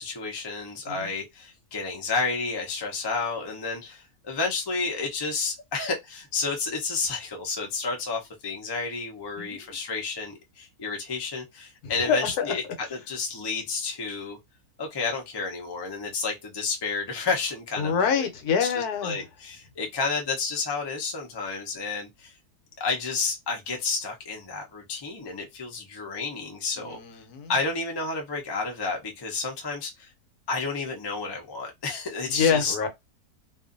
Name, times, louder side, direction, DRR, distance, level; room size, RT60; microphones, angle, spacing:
voice 1, 0.0-14.4 14.8-18.3 18.6-22.3 22.8-27.0 27.5-30.1 30.5-32.9, left 4 dB, 40° left, 0.3 m, -31 dB
voice 2, 9.4-9.8 11.8-12.5 17.8-19.2 26.8-27.5 32.3-32.9, left 6 dB, 80° left, 1.2 m, -26 dB
2.6 x 2.4 x 2.4 m
omnidirectional pair, 1.7 m